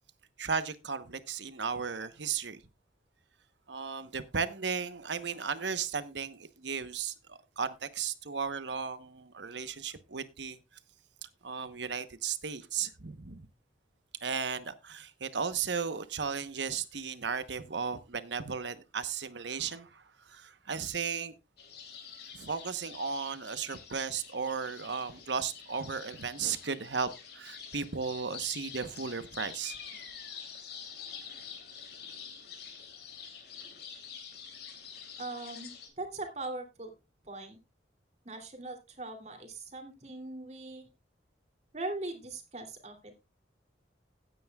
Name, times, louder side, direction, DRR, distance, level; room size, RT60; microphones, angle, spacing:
voice 1, 0.4-2.6 3.7-10.6 11.2-13.5 14.2-21.3 22.3-29.8, right 6 dB, 75° right, 1.0 m, -35 dB
sound 1, 21.6-35.9, left 7 dB, 60° left, 3.0 m, -47 dB
voice 2, 35.2-36.9 37.2-37.6 38.2-40.9 41.7-43.1, right 2 dB, 40° right, 2.8 m, -40 dB
16.5 x 9.4 x 2.4 m
head